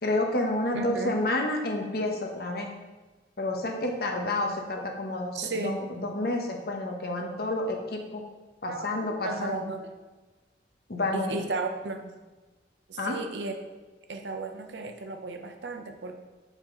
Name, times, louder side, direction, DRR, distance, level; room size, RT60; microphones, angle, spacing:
voice 1, 0.0-2.7 3.4-5.7 6.0-8.2 8.6-9.6 10.9-11.4 13.0-13.2, left 2 dB, 60° left, 2 dB, 0.9 m, -29 dB
voice 2, 0.7-1.2 5.3-5.8 8.7-9.9 11.1-12.2 12.9-13.6 14.1-16.1, right 3 dB, 80° right, 6 dB, 0.6 m, -34 dB
5.8 x 4.9 x 3.8 m, 1.2 s
head